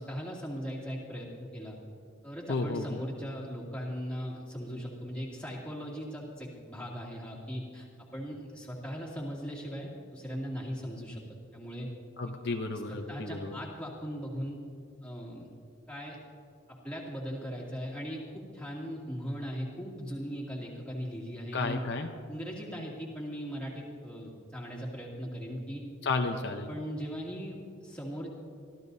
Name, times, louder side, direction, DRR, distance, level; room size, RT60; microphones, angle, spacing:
voice 1, 0.0-1.8 2.2-11.2 11.5-11.9 12.7-14.6 15.0-15.5 15.9-16.2 16.7-21.8 22.3-25.8 26.7-28.3, equal, 5° left, -5 dB, 2.5 m, -39 dB
voice 2, 2.5-3.0 12.2-13.6 21.5-22.1 26.0-26.7, left 3 dB, 50° left, 3 dB, 0.8 m, -32 dB
24.0 x 14.5 x 2.7 m, 2.3 s
head